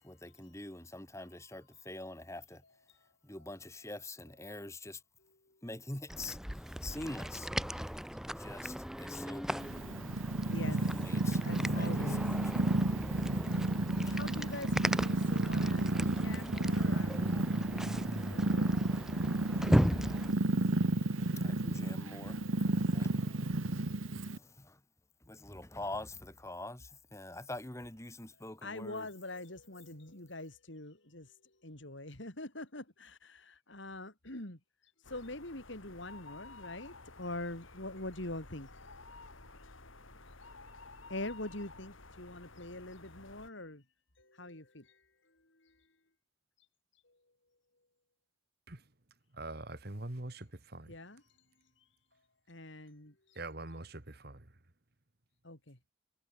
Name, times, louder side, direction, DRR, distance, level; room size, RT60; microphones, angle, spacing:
voice 1, 0.0-2.6 3.2-5.0 5.6-7.5 7.9-9.8 10.1-10.2 10.8-12.8 21.1-23.4 23.7-24.8 25.2-29.1, left 2 dB, 15° left, 2.2 m, -45 dB
sound 1, 6.1-20.3, equal, ahead, 0.7 m, -37 dB
Purr, 9.6-24.4, right 2 dB, 80° right, 1.3 m, -32 dB
voice 2, 11.4-12.3 13.9-17.5 18.0-18.7 20.6-20.7 28.6-31.3 31.6-34.6 35.1-38.7 39.6-39.7 41.1-43.8 44.2-44.9 50.9-51.2 52.5-53.1 55.4-55.8, left 2 dB, 65° left, 4.2 m, -44 dB
sound 2, 35.0-43.5, left 3 dB, 80° left, 4.0 m, -53 dB
voice 3, 49.3-50.9 53.4-54.5, right 2 dB, 50° right, 2.0 m, -43 dB
head